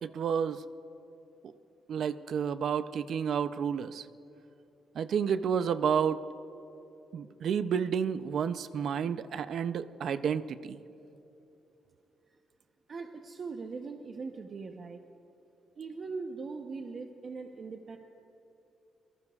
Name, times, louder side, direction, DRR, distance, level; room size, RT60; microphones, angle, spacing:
voice 1, 0.0-0.6 1.4-1.5 1.9-4.1 4.9-6.2 7.1-10.8, right 7 dB, 65° right, 12 dB, 0.5 m, -30 dB
voice 2, 12.9-15.0 15.8-18.0, right 4 dB, 45° right, 3 dB, 0.9 m, -40 dB
27.0 x 19.0 x 2.4 m, 3.0 s
cardioid pair, 125°, 0 cm